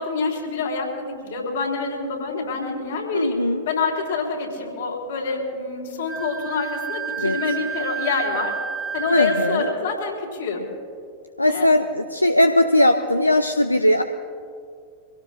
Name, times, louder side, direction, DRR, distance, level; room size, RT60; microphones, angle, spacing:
voice 1, 0.0-8.6 8.9-10.6 11.5-11.7, left 4 dB, 60° left, -1 dB, 3.4 m, -26 dB
voice 2, 3.1-3.6 7.2-7.4 9.1-9.7 11.4-14.0, left 1 dB, 85° left, 8 dB, 0.5 m, -19 dB
Wind instrument woodwind instrument, 6.1-9.8, right 7 dB, 15° right, 1.6 m, -30 dB
24.5 x 17.5 x 2.5 m, 2.3 s
figure-of-eight pair, 90°, 0 cm